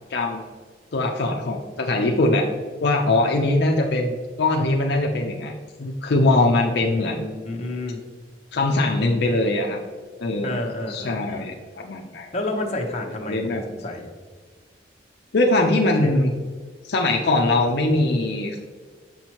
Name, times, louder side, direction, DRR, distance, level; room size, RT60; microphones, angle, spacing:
voice 1, 0.1-0.4 0.9-2.5 2.8-5.5 5.8-7.2 8.5-9.8 10.2-10.6 10.9-12.3 13.2-13.6 15.3-16.3 16.8-18.6, left 2 dB, 65° left, 1 dB, 0.6 m, -21 dB
voice 2, 6.8-8.0 10.4-11.5 12.3-14.1 16.0-16.1, left 2 dB, 40° left, 1 dB, 0.9 m, -30 dB
7.1 x 5.9 x 2.9 m, 1.5 s
head